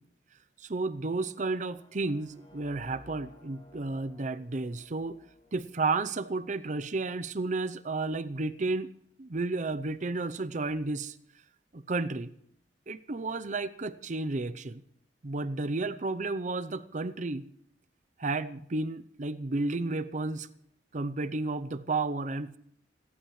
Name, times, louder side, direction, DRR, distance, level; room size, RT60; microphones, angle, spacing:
voice 1, 0.6-5.2 5.5-8.9 9.2-11.1 11.7-12.3 12.9-14.8 15.2-17.5 18.2-20.5 20.9-22.5, right 3 dB, 45° right, 13 dB, 0.7 m, -32 dB
sound 1, 1.1-7.1, left 2 dB, 30° left, 3.1 m, -60 dB
29.0 x 12.5 x 3.2 m, 0.71 s
head